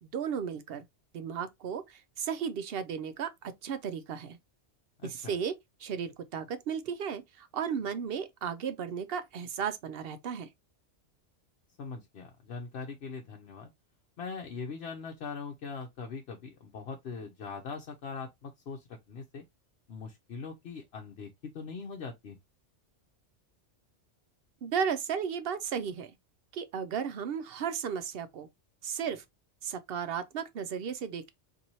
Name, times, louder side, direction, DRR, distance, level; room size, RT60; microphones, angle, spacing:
voice 1, 0.0-0.8 1.1-4.4 5.0-5.5 5.8-10.5 24.6-26.1 26.5-28.5 28.8-29.2 29.6-31.3, right 7 dB, 65° right, 0.7 m, -34 dB
voice 2, 5.0-5.4 11.8-13.7 14.2-19.4 19.9-22.4, left 5 dB, 65° left, 0.9 m, -41 dB
4.1 x 2.7 x 2.9 m
omnidirectional pair, 1.2 m